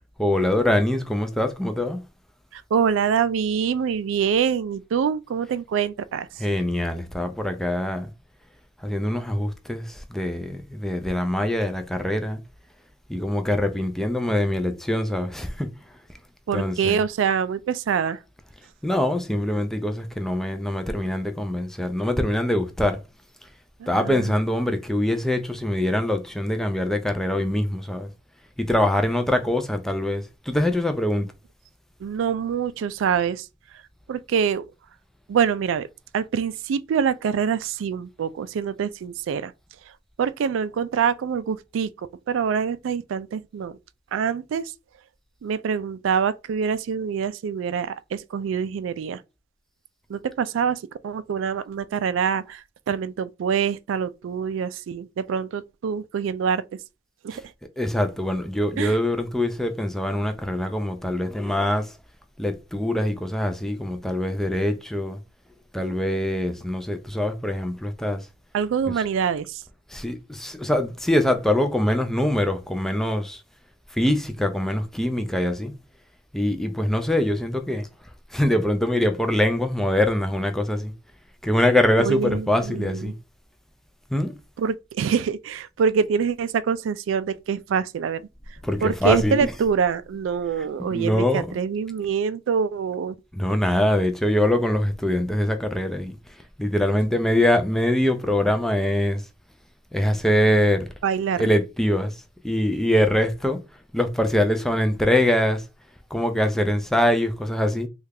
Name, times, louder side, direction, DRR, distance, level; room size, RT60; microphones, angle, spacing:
voice 1, 0.2-2.0 6.4-8.1 8.8-12.4 13.1-15.7 16.5-17.0 18.8-23.0 23.9-28.1 28.6-31.3 57.3-57.4 57.8-61.9 62.4-65.2 65.7-68.3 69.0-69.1 69.9-73.4 73.9-75.8 76.3-77.9 78.3-80.9 81.4-83.1 84.1-84.3 88.6-89.5 90.6-91.6 93.3-96.2 96.6-99.2 99.9-100.9 101.4-102.1 102.4-103.6 103.9-105.6 106.1-107.9, left 1 dB, ahead, 0.3 m, -23 dB
voice 2, 2.5-6.3 16.5-18.2 23.8-24.3 32.0-33.5 34.1-34.6 35.3-35.9 36.1-39.5 40.2-41.9 42.3-43.8 44.1-44.7 45.4-49.2 50.1-56.6 57.2-57.4 58.8-58.9 68.5-69.6 82.0-83.1 84.6-88.3 88.8-93.2 101.0-101.4, right 7 dB, 90° right, 0.3 m, -25 dB
3.2 x 2.3 x 3.3 m
head